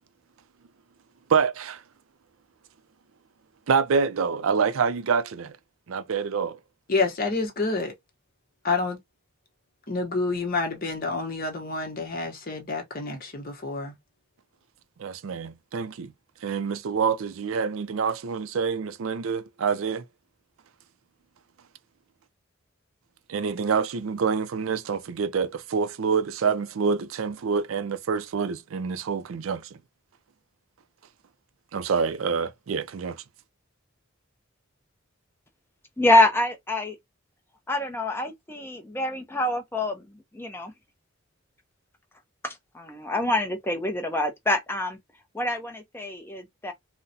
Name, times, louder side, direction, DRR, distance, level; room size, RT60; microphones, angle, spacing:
voice 1, 1.3-1.8 3.7-5.5 5.9-6.6 15.0-16.1 16.4-20.0 23.3-29.7 31.7-33.2, right 5 dB, 75° right, 0.4 m, -26 dB
voice 2, 6.9-7.9 8.6-9.0 9.9-13.9, left 3 dB, 45° left, 1.0 m, -28 dB
voice 3, 36.0-37.0 37.7-40.1 40.3-40.7 42.4-45.0 45.3-46.7, left 2 dB, 10° left, 0.6 m, -25 dB
3.8 x 2.1 x 2.7 m
head